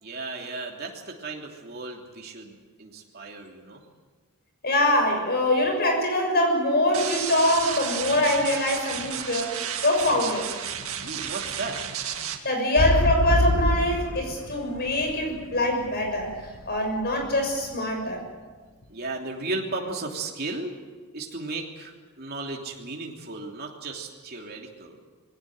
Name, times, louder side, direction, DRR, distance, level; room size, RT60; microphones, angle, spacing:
voice 1, 0.0-3.8 11.0-11.8 18.9-20.7 21.1-25.0, right 3 dB, 45° right, 0 dB, 3.1 m, -35 dB
voice 2, 4.6-9.5 9.8-10.5 12.4-16.3 16.7-18.2, left 1 dB, 45° left, 3 dB, 6.7 m, -23 dB
sound 1, 6.9-12.4, right 9 dB, 70° right, 2.0 m, -32 dB
sound 2, 12.8-16.6 17.2-17.3, left 1 dB, 65° left, 1.5 m, -25 dB
21.0 x 17.5 x 9.0 m, 1.4 s
head